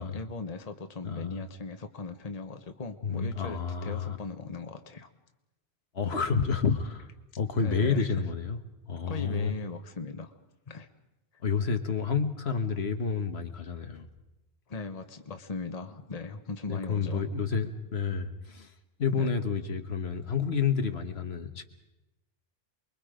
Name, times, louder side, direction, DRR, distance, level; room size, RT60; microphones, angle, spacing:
voice 1, 0.0-5.1 7.6-8.1 9.1-10.3 10.7-10.9 14.7-17.2 19.1-19.3, left 4 dB, 40° left, 7 dB, 1.2 m, -39 dB
voice 2, 1.0-1.4 3.0-4.2 5.9-7.1 7.4-8.6 8.9-9.5 11.4-14.1 16.7-18.7 19.0-21.7, left 5 dB, 75° left, 7 dB, 1.6 m, -29 dB
28.5 x 22.0 x 5.1 m, 0.98 s
omnidirectional pair, 1.1 m